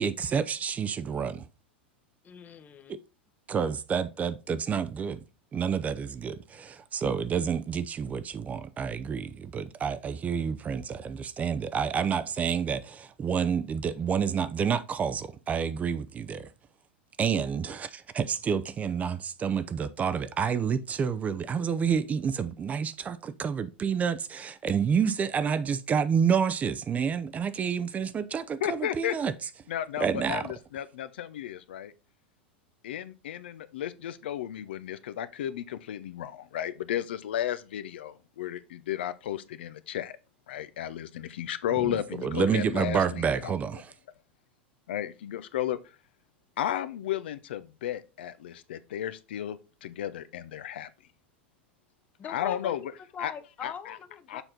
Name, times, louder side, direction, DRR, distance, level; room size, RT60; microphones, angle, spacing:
voice 1, 0.0-1.4 3.5-5.2 5.5-16.5 17.2-29.3 30.0-30.4 41.8-42.0 42.2-43.9, right 7 dB, 25° right, 0.5 m, -29 dB
voice 2, 2.2-3.0 30.2-30.4 52.2-54.4, left 7 dB, 25° left, 0.8 m, -42 dB
voice 3, 28.6-29.2 29.7-31.9 32.8-40.2 40.5-43.8 44.9-45.8 46.6-50.9 52.3-52.8 53.2-53.3 53.6-54.0 54.3-54.4, left 11 dB, 70° left, 0.6 m, -34 dB
7.0 x 4.3 x 3.9 m
hypercardioid pair, 95°, 6 cm